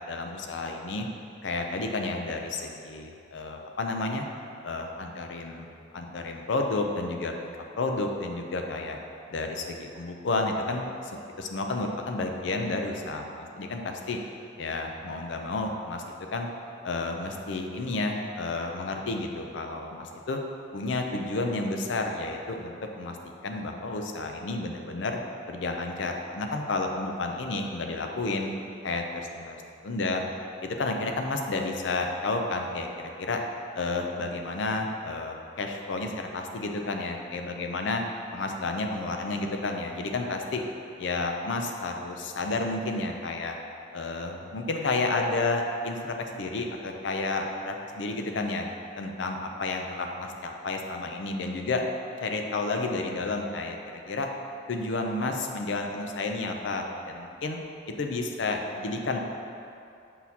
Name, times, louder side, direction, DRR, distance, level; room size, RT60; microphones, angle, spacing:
voice 1, 0.1-1.1 1.4-4.3 4.6-5.7 5.9-7.3 7.7-9.0 9.3-14.2 14.6-16.0 16.3-16.5 16.8-20.4 20.7-23.2 23.4-25.2 25.5-28.5 28.8-29.6 29.8-30.2 30.6-32.9 33.2-33.4 33.7-38.0 38.3-40.6 41.0-43.6 43.9-48.7 49.0-51.8 52.2-54.3 54.7-57.6 58.0-59.2, left 3 dB, 70° left, 3 dB, 0.5 m, -31 dB
6.2 x 5.6 x 2.8 m, 2.6 s
head